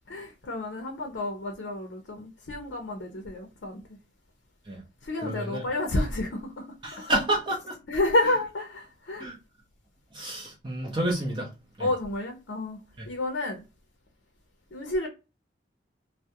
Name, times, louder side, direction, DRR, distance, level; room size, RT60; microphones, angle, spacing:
voice 1, 0.1-3.8 5.0-6.6 7.0-7.1 7.9-9.3 11.8-12.8 13.1-13.6 14.7-15.1, left 2 dB, 70° left, 0.5 m, -30 dB
voice 2, 5.2-5.6 6.8-7.7 8.2-8.3 9.2-9.4 10.1-11.5 11.8-11.9 13.0-13.1, right 1 dB, 25° right, 0.5 m, -29 dB
2.3 x 2.1 x 2.7 m
head